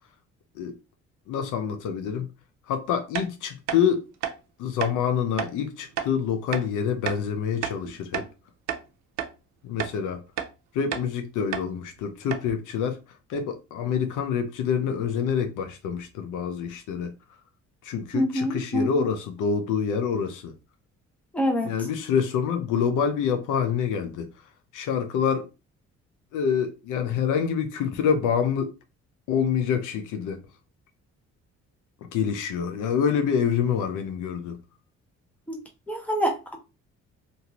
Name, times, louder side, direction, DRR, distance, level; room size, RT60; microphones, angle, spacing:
voice 1, 1.3-2.3 2.7-4.1 4.6-8.3 9.6-10.2 10.7-13.0 13.3-17.1 17.8-20.5 21.6-24.3 24.7-25.5 26.3-28.7 29.3-30.4 32.1-34.6, left 7 dB, 90° left, 0.7 m, -26 dB
sound 1, 3.1-3.3 3.7-3.8 4.2-4.4 4.8-4.9 5.4-5.5 6.0-6.1 6.5-6.7 7.1-7.2 7.6-8.3 8.7-8.8 9.2-9.3 9.8-10.0 10.4-10.5 10.9-11.1 11.5-11.7 12.0-12.1 12.3-12.5, right 9 dB, 70° right, 0.6 m, -31 dB
voice 2, 18.1-19.1 21.3-21.7 35.5-35.6 35.9-36.6, equal, 5° left, 0.9 m, -26 dB
2.7 x 2.6 x 2.9 m
cardioid pair, 90°, 30 cm